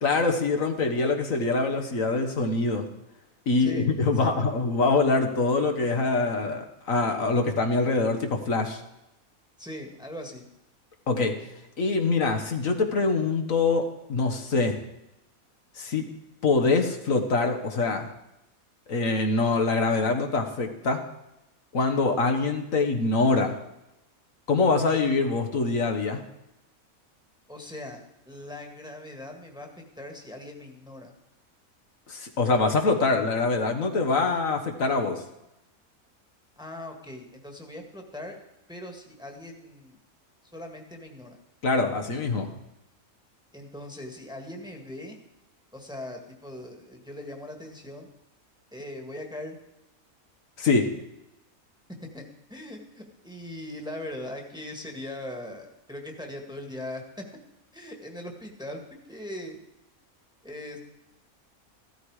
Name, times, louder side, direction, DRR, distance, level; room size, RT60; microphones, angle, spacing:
voice 1, 0.0-2.9 3.5-8.8 11.1-11.3 11.8-13.8 14.1-14.8 15.8-16.1 16.4-18.1 18.9-21.0 21.7-23.5 24.5-26.2 32.1-35.2 41.6-42.5 50.6-50.9, left 3 dB, 65° left, 4 dB, 1.7 m, -24 dB
voice 2, 3.6-4.5 9.6-10.4 27.5-29.7 30.0-31.1 36.6-38.4 38.7-40.0 40.5-41.4 43.5-45.2 45.7-48.1 48.7-49.6 52.1-52.2 52.5-57.0 57.7-59.6 60.4-60.8, left 1 dB, 5° right, 3 dB, 1.8 m, -40 dB
15.0 x 12.5 x 4.9 m, 0.90 s
omnidirectional pair, 1.5 m